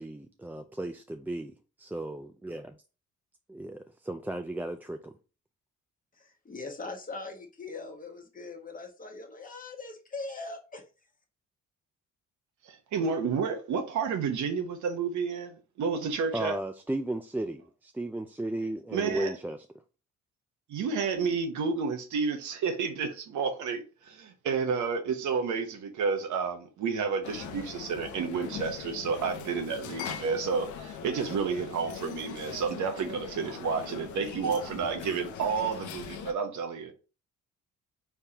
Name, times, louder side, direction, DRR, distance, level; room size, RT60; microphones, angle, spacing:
voice 1, 0.0-1.5 1.8-2.8 3.5-5.1 16.3-19.6, right 1 dB, 5° right, 0.3 m, -35 dB
voice 2, 6.1-10.8, left 3 dB, 25° left, 1.2 m, -41 dB
voice 3, 12.6-16.6 18.9-19.3 20.7-36.9, right 5 dB, 75° right, 1.0 m, -31 dB
sound 1, 27.2-36.3, left 8 dB, 80° left, 0.7 m, -41 dB
4.6 x 3.6 x 2.8 m
cardioid pair, 90°, 30 cm